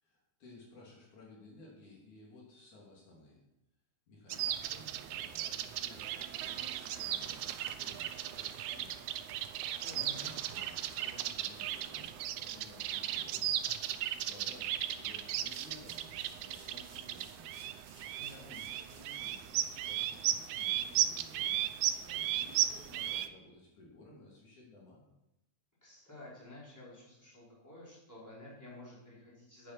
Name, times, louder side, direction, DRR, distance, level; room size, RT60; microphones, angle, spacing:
voice 1, 0.0-3.4 4.1-9.3 9.9-13.5 14.1-17.6 18.4-21.6 22.0-25.0, left 2 dB, 75° left, -4 dB, 4.4 m, -56 dB
sound 1, 4.3-23.3, right 11 dB, 80° right, 2.0 m, -36 dB
voice 2, 9.8-10.3 18.2-18.5 25.8-29.7, left 1 dB, 5° left, -7 dB, 4.6 m, -51 dB
sound 2, 15.4-19.5, right 2 dB, 40° right, 2.7 m, -59 dB
10.0 x 9.0 x 6.1 m, 0.92 s
omnidirectional pair, 3.5 m